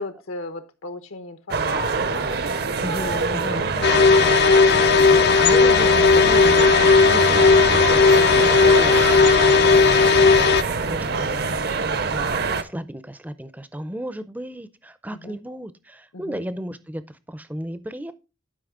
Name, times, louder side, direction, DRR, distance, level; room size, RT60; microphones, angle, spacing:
voice 1, 0.0-4.1 4.5-5.1 15.1-15.4 16.1-16.4, left 3 dB, 75° left, 0.9 m, -36 dB
sound 1, 1.5-12.6, right 4 dB, 50° right, 0.6 m, -25 dB
voice 2, 2.8-3.7 4.6-18.1, equal, 10° right, 0.5 m, -35 dB
sound 2, 3.8-10.6, left 5 dB, 50° left, 0.4 m, -15 dB
sound 3, 6.0-11.7, right 2 dB, 80° right, 1.3 m, -37 dB
11.5 x 5.2 x 3.7 m
head